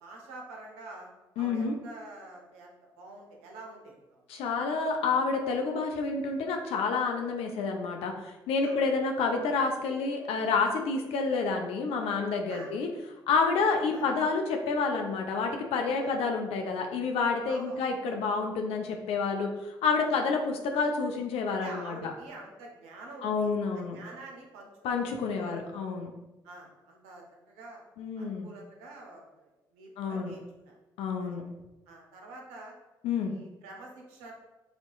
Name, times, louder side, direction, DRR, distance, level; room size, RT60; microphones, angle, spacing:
voice 1, 0.0-1.1 1.4-4.2 8.6-8.8 12.5-12.7 13.4-13.5 13.9-14.1 16.0-16.2 17.5-17.8 21.5-25.1 25.3-25.6 26.4-27.8 28.2-30.8 31.2-31.4 31.9-32.8 33.2-34.3, right 2 dB, 80° right, 1 dB, 0.7 m, -47 dB
voice 2, 1.4-1.8 4.3-12.9 13.3-22.1 23.2-24.0 24.8-26.1 28.0-28.5 30.0-30.3 31.0-31.5 33.0-33.3, left 4 dB, 70° left, 3 dB, 0.4 m, -29 dB
4.1 x 2.9 x 2.3 m, 1.1 s
hypercardioid pair, 45°, 10 cm